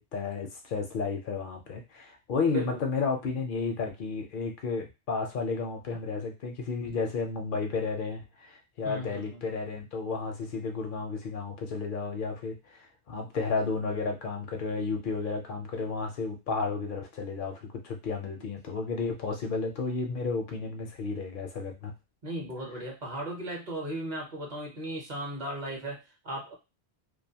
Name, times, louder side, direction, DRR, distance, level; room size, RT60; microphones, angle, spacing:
voice 1, 0.0-21.9, left 4 dB, 60° left, 3 dB, 0.6 m, -32 dB
voice 2, 2.5-2.8 8.8-9.4 18.4-18.5 22.2-26.5, right 1 dB, 45° right, 0 dB, 0.8 m, -36 dB
2.4 x 2.3 x 2.7 m, 0.26 s
omnidirectional pair, 1.1 m